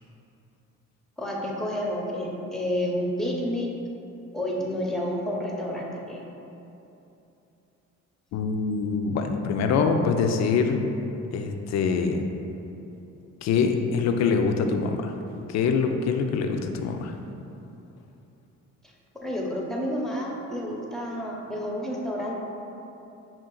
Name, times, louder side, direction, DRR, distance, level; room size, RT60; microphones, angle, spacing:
voice 1, 1.2-3.7 4.3-6.2 19.2-22.3, equal, ahead, -2 dB, 0.7 m, -30 dB
voice 2, 8.3-10.8 11.3-12.2 13.4-15.1 15.5-17.1, left 5 dB, 60° left, 5 dB, 0.4 m, -24 dB
5.7 x 2.4 x 3.8 m, 2.9 s
cardioid pair, 90°, 30 cm